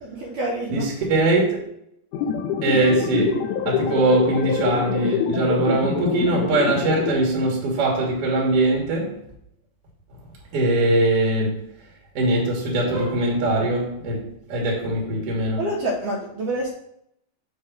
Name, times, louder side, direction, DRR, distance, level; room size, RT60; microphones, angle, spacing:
voice 1, 0.0-0.9 15.6-16.7, right 1 dB, 70° right, -2 dB, 2.2 m, -27 dB
voice 2, 0.7-1.6 2.6-9.2 10.5-11.7 12.1-15.6, right 2 dB, 50° right, -2 dB, 2.0 m, -21 dB
sound 1, 2.1-7.1, left 7 dB, 80° left, 1.9 m, -25 dB
6.6 x 3.1 x 5.9 m, 0.74 s
omnidirectional pair, 4.2 m